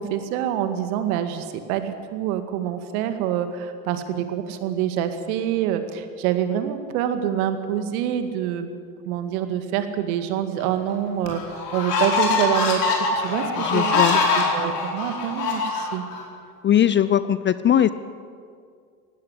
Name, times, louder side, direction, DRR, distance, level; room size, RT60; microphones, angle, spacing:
voice 1, 0.0-8.7 9.1-12.8 13.2-14.0 14.4-16.0, right 10 dB, 60° right, 8 dB, 2.2 m, -26 dB
sound 1, 10.6-10.7 11.3-16.2, left 4 dB, 75° left, 4.9 m, -23 dB
voice 2, 13.6-14.2 16.6-17.9, left 10 dB, 25° left, 15 dB, 0.6 m, -19 dB
18.5 x 16.0 x 9.9 m, 2.2 s
hypercardioid pair, 80°, 47 cm